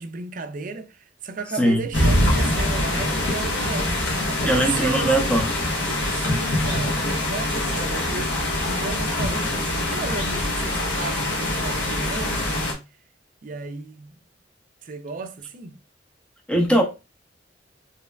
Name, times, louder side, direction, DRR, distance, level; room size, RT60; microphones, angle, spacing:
voice 1, 0.0-3.9 4.3-5.4 6.1-12.9 13.4-14.1 14.8-15.8, right 4 dB, 45° right, 0.4 m, -34 dB
sound 1, 1.9-12.7, left 1 dB, 65° left, 1.0 m, -24 dB
voice 2, 4.4-5.5 16.5-16.8, right 1 dB, 5° left, 0.6 m, -20 dB
3.3 x 3.1 x 2.3 m
head